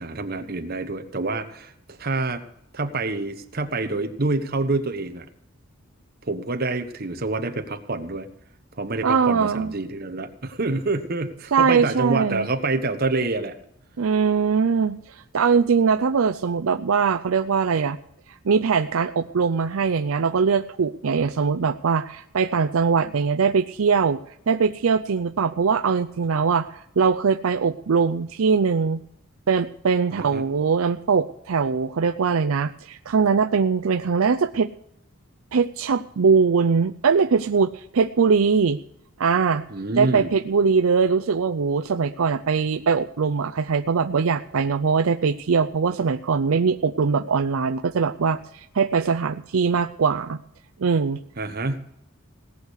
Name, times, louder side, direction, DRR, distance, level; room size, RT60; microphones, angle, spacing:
voice 1, 0.0-2.4 2.7-5.3 6.2-8.3 8.8-13.6 30.1-30.4 39.7-40.3 51.4-51.9, right 3 dB, 45° right, 7 dB, 1.2 m, -27 dB
voice 2, 9.0-9.7 11.5-12.5 14.0-18.0 18.3-24.2 24.5-29.0 29.5-34.7 35.5-38.8 39.2-39.6 40.0-50.4 50.8-51.2, right 5 dB, 75° right, 8 dB, 0.5 m, -21 dB
17.5 x 6.4 x 8.3 m, 0.77 s
head